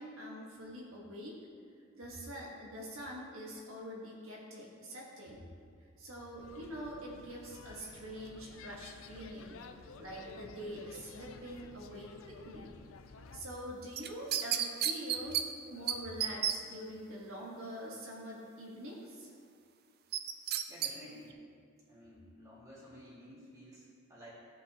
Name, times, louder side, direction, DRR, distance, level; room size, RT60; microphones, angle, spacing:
voice 1, 0.0-1.4 1.9-5.5 6.0-9.6 10.0-12.7 13.3-15.4 15.7-19.3, equal, 75° right, -4 dB, 1.4 m, -45 dB
sound 1, 6.4-13.4, left 4 dB, 70° left, 0.4 m, -52 dB
sound 2, 14.0-15.4 15.9-16.6 20.1-20.9 21.3-21.4, right 10 dB, 45° right, 0.4 m, -31 dB
voice 2, 20.7-21.3 21.9-24.3, equal, 15° right, -8 dB, 2.2 m, -53 dB
14.0 x 5.3 x 2.9 m, 2.2 s
head